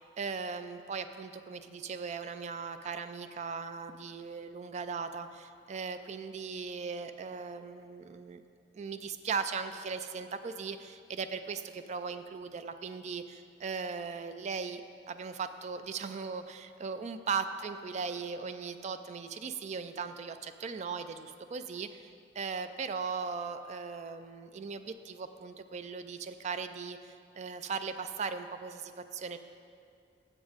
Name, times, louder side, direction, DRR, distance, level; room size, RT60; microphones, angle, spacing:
voice 1, 0.0-8.4 8.7-14.8 15.1-29.4, right 5 dB, 40° right, 10 dB, 0.3 m, -38 dB
7.5 x 7.0 x 5.0 m, 2.4 s
head